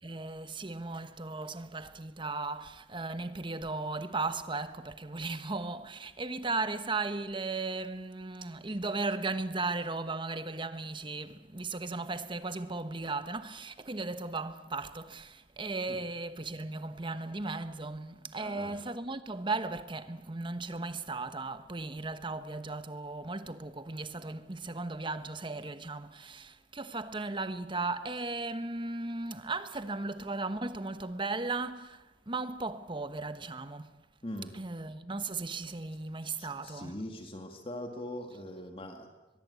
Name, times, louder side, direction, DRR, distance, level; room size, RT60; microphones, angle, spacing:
voice 1, 0.0-34.0 34.5-37.0, right 3 dB, 30° right, 1.1 m, -36 dB
voice 2, 18.4-18.8 34.2-34.5 36.4-39.1, left 1 dB, 30° left, 2.1 m, -41 dB
22.5 x 22.5 x 8.4 m
head